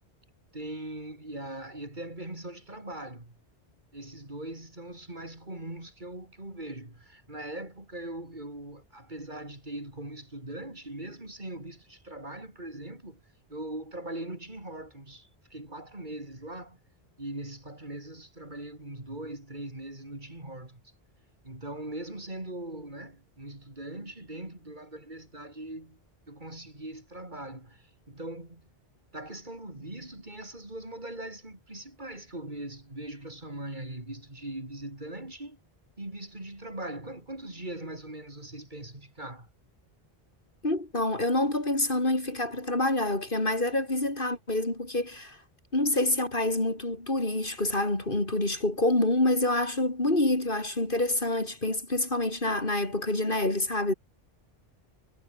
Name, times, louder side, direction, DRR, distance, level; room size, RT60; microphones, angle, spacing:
voice 1, 0.5-3.3 3.9-13.2 13.5-16.8 17.2-20.8 21.4-26.0 26.3-28.6 29.1-35.6 36.0-39.5, right 1 dB, 50° right, 4.8 m, -41 dB
voice 2, 40.6-45.4 45.7-53.9, left 2 dB, 55° left, 4.6 m, -27 dB
omnidirectional pair, 1.0 m